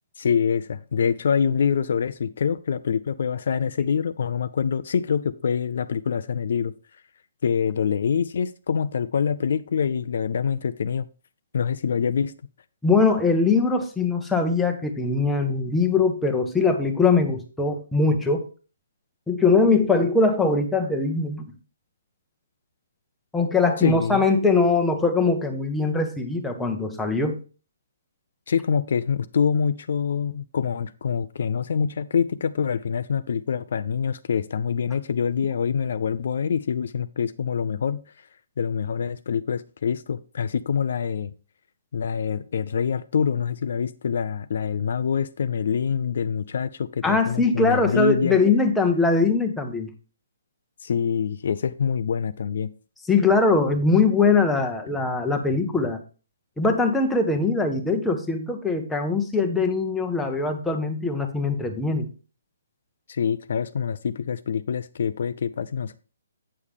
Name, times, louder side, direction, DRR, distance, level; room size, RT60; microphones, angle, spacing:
voice 1, 0.2-6.7 7.4-11.1 11.5-12.3 23.8-24.3 28.5-38.0 38.6-41.3 41.9-48.4 50.8-52.7 63.1-65.9, left 7 dB, 55° left, 0.4 m, -25 dB
voice 2, 12.8-18.5 19.3-21.4 23.3-27.4 47.0-49.9 53.1-56.0 56.6-62.1, left 3 dB, 5° left, 0.8 m, -21 dB
8.7 x 6.5 x 3.6 m
hypercardioid pair, 170°, 0 cm